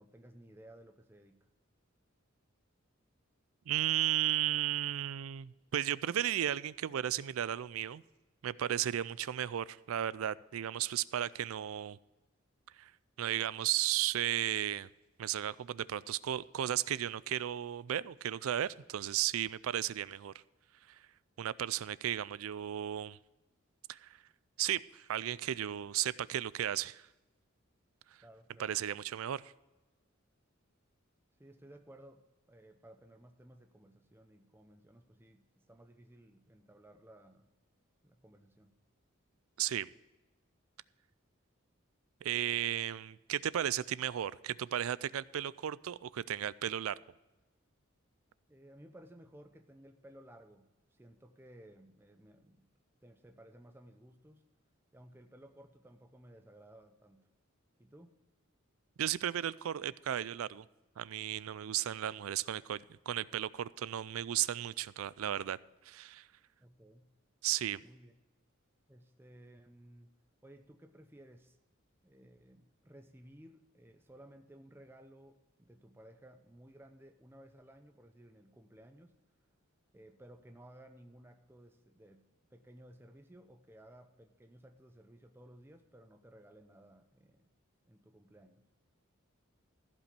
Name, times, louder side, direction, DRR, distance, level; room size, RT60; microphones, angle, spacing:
voice 1, 0.0-1.5 28.2-28.7 31.4-37.5 38.0-38.8 48.5-52.7 53.0-54.4 54.9-57.3 57.8-58.1 66.6-67.1 67.8-68.1 68.9-70.1 70.4-71.6 72.0-79.1 79.9-87.5 87.8-88.6, right 1 dB, 10° right, 0.6 m, -57 dB
voice 2, 3.7-8.0 8.4-12.0 12.8-12.9 13.2-14.9 15.2-20.3 21.4-23.2 23.9-24.2 24.6-27.0 28.6-29.5 39.6-39.9 42.2-47.0 59.0-60.6 61.0-65.6 65.9-66.3 67.4-67.8, right 11 dB, 90° right, 0.4 m, -34 dB
14.5 x 5.3 x 6.7 m
head